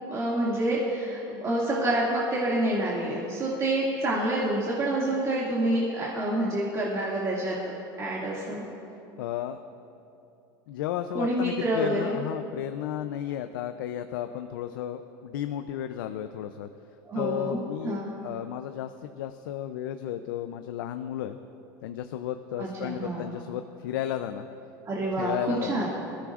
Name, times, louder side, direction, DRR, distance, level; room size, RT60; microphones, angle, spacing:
voice 1, 0.1-8.6 11.1-12.2 17.1-17.6 17.8-18.1 22.6-23.3 24.9-25.9, right 1 dB, 25° right, -6 dB, 2.2 m, -28 dB
voice 2, 9.2-9.6 10.7-16.7 17.1-21.4 21.8-24.5 25.2-25.8, left 11 dB, 80° left, 8 dB, 0.5 m, -33 dB
21.0 x 14.5 x 2.5 m, 2.8 s
supercardioid pair, 115°, 11 cm